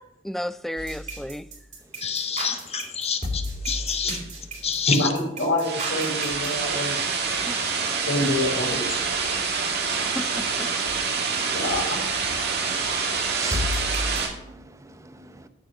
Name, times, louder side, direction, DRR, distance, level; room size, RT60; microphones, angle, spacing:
voice 1, 0.2-1.5 9.9-10.7, equal, ahead, 0.3 m, -33 dB
sound 1, 0.8-6.5 13.5-14.2, equal, 40° right, 3.6 m, -32 dB
voice 2, 2.0-4.2 4.6-4.9, left 7 dB, 35° left, 1.1 m, -28 dB
voice 3, 4.7-7.0 8.0-9.1 11.5-12.0, left 1 dB, 80° left, 4.2 m, -26 dB
sound 2, 5.6-14.3, right 5 dB, 60° right, 2.1 m, -26 dB
voice 4, 12.6-15.5, right 3 dB, 15° right, 0.8 m, -41 dB
13.5 x 4.9 x 7.6 m
head